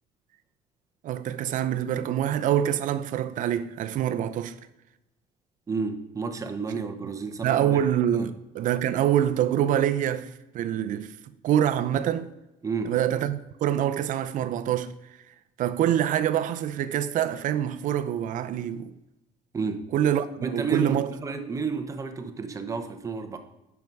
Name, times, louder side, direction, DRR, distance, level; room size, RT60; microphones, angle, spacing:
voice 1, 1.0-4.6 7.4-11.1 11.4-12.3 12.8-14.9 15.6-18.9 19.9-21.1, right 10 dB, 50° right, 0.6 m, -25 dB
voice 2, 5.7-7.9 8.1-8.2 12.6-12.9 19.5-19.9 20.4-23.4, right 5 dB, 20° right, 0.8 m, -31 dB
9.3 x 6.0 x 5.3 m
cardioid pair, 160°, 17 cm